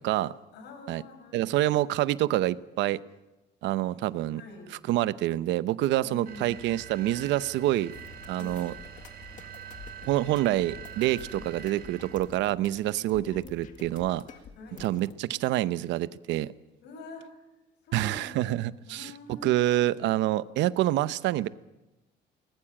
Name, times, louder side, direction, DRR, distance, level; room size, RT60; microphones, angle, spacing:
voice 1, 0.0-0.3 0.9-1.0 1.3-3.0 3.6-4.4 4.9-7.9 8.3-8.7 10.1-14.2 14.8-16.5 17.9-19.1 19.4-21.5, right 14 dB, 85° right, 0.8 m, -27 dB
voice 2, 0.5-2.1 4.3-4.8 6.0-6.9 8.3-8.8 11.3-11.6 12.9-13.3 14.5-14.9 16.8-17.5 17.8-18.6 18.9-20.0, left 2 dB, 70° left, 6.4 m, -46 dB
sound 1, 6.3-12.4, right 9 dB, 55° right, 3.3 m, -45 dB
sound 2, 7.9-15.1, left 6 dB, 45° left, 2.0 m, -49 dB
20.5 x 20.0 x 8.8 m
cardioid pair, 180°, 18 cm